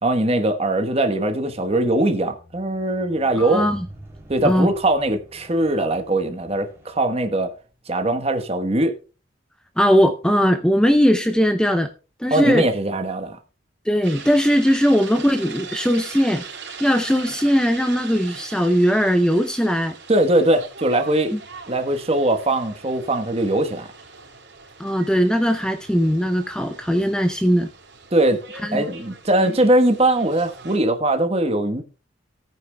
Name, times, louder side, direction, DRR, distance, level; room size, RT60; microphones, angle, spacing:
voice 1, 0.0-3.6 4.3-7.5 7.9-8.9 12.3-13.4 20.1-21.3 21.7-23.9 28.1-28.4 28.7-31.8, right 1 dB, 30° right, 1.2 m, -21 dB
Squeak, 1.5-7.8 8.6-8.7, right 1 dB, 15° right, 3.2 m, -46 dB
voice 2, 3.4-3.8 4.4-4.7 9.8-11.9 12.2-12.7 13.9-16.4 16.8-20.0 21.3-21.4 24.8-27.7 28.6-28.8, equal, 5° left, 0.5 m, -19 dB
sound 1, 14.0-30.8, right 5 dB, 60° right, 3.9 m, -41 dB
18.0 x 9.2 x 2.2 m
head